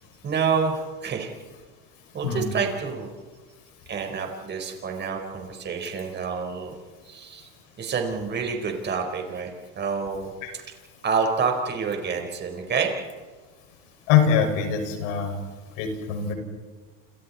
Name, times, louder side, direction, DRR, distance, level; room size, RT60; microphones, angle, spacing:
voice 1, 0.2-1.3 2.1-3.1 3.9-6.7 7.1-7.5 7.8-10.6 11.0-12.9, right 5 dB, 25° right, 3 dB, 4.6 m, -28 dB
voice 2, 14.1-15.3 15.8-16.3, left 7 dB, 80° left, 4 dB, 6.0 m, -23 dB
29.0 x 28.5 x 4.3 m, 1.5 s
cardioid pair, 150°, 39 cm